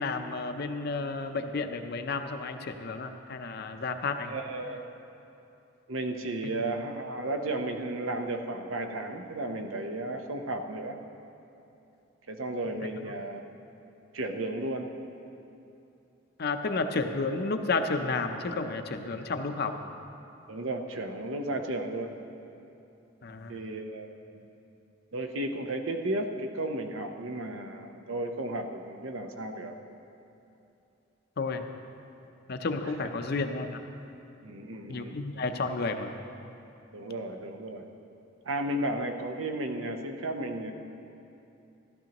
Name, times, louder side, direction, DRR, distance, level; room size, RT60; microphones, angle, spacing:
voice 1, 0.0-4.3 16.4-19.8 23.2-23.5 31.4-31.6 32.5-33.7 34.9-36.1, left 3 dB, 50° left, 7 dB, 0.6 m, -31 dB
voice 2, 4.3-4.8 5.9-11.0 12.3-13.4 14.1-14.9 20.5-22.2 23.5-24.4 25.1-29.8 34.4-35.2 36.9-37.9 38.4-40.7, right 1 dB, 85° right, 4 dB, 0.8 m, -34 dB
14.5 x 12.0 x 3.0 m, 2.8 s
head